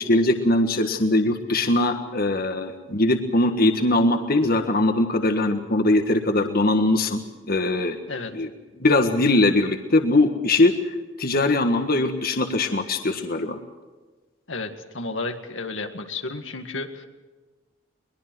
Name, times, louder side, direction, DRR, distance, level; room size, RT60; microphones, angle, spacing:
voice 1, 0.0-7.2 7.5-8.0 8.3-8.5 8.8-10.7 11.2-13.6, left 2 dB, 50° left, 6 dB, 1.6 m, -21 dB
voice 2, 14.5-17.0, left 3 dB, 80° left, 6 dB, 2.0 m, -32 dB
22.5 x 21.0 x 6.2 m, 1.3 s
head